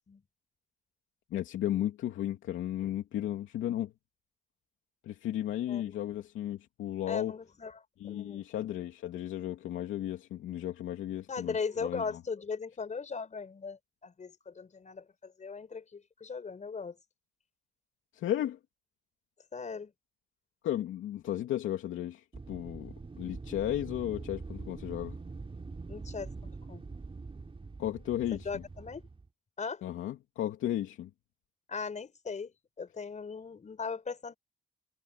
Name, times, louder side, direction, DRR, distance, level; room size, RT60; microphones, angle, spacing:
voice 1, 1.3-3.9 5.0-7.3 8.0-12.0 18.1-18.6 20.6-25.2 27.8-28.6 29.8-31.1, left 12 dB, 80° left, 2.8 m, -34 dB
voice 2, 7.1-8.5 11.3-17.0 19.5-19.9 25.9-26.8 28.5-29.1 29.6-29.8 31.7-34.4, left 5 dB, 35° left, 5.5 m, -39 dB
Wind, 22.3-29.3, right 4 dB, 25° right, 5.4 m, -44 dB
cardioid pair, 90°, 20 cm